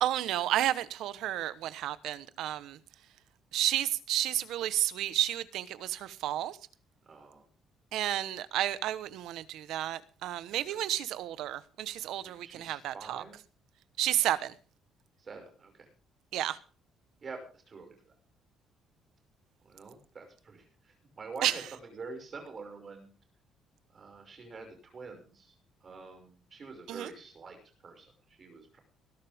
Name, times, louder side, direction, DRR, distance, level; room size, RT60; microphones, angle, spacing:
voice 1, 0.0-2.8 3.5-6.6 7.9-13.2 14.0-14.5 16.3-16.6 21.4-21.6 26.9-27.1, right 13 dB, 75° right, 1.1 m, -31 dB
voice 2, 7.0-7.5 10.7-10.8 12.2-13.4 15.2-15.9 17.2-18.1 19.6-23.1 23.9-25.5 25.8-28.8, right 4 dB, 30° right, 5.8 m, -47 dB
20.0 x 12.0 x 3.6 m
cardioid pair, 160°, 0 cm